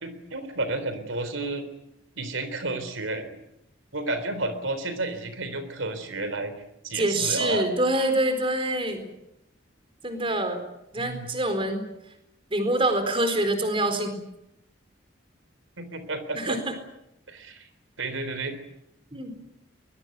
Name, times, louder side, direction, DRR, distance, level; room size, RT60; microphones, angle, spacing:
voice 1, 0.0-1.6 2.2-3.3 3.9-6.5 6.8-7.7 11.0-11.3 15.8-16.6 17.3-17.7 18.0-18.6, right 2 dB, 85° right, 11 dB, 3.7 m, -31 dB
voice 2, 6.9-9.1 10.0-10.6 10.9-11.8 12.5-14.1 16.3-16.7 19.1-19.3, right 1 dB, 30° right, 8 dB, 4.3 m, -25 dB
22.5 x 22.0 x 9.4 m, 0.85 s
head